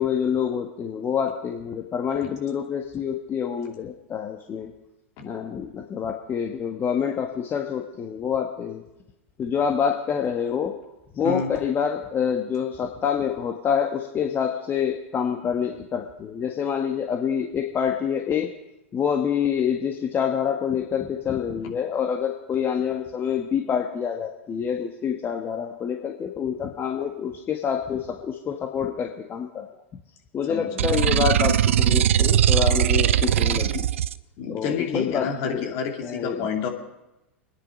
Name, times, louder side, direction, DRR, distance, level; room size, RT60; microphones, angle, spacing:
voice 1, 0.0-4.7 5.2-8.8 9.4-10.8 11.1-18.5 18.9-29.7 30.3-33.9 34.5-35.7 36.0-36.5, left 7 dB, 30° left, 2 dB, 1.5 m, -27 dB
sound 1, 30.8-34.1, right 11 dB, 75° right, 0.5 m, -20 dB
voice 2, 34.4-36.7, left 6 dB, 50° left, 2 dB, 2.9 m, -29 dB
25.0 x 10.0 x 5.2 m, 0.94 s
hypercardioid pair, 95°, 7 cm